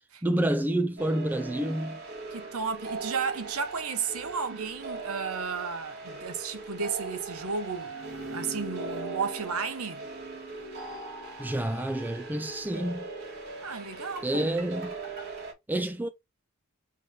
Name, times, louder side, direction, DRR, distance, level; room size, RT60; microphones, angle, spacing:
voice 1, 0.2-2.0 11.4-13.1 14.2-14.9 15.7-16.1, right 1 dB, 10° right, 0.3 m, -28 dB
sound 1, 1.0-15.5, right 3 dB, 50° right, 1.9 m, -40 dB
voice 2, 2.3-7.9 8.3-10.1 13.6-14.5, right 5 dB, 75° right, 1.0 m, -33 dB
4.3 x 3.2 x 3.8 m
head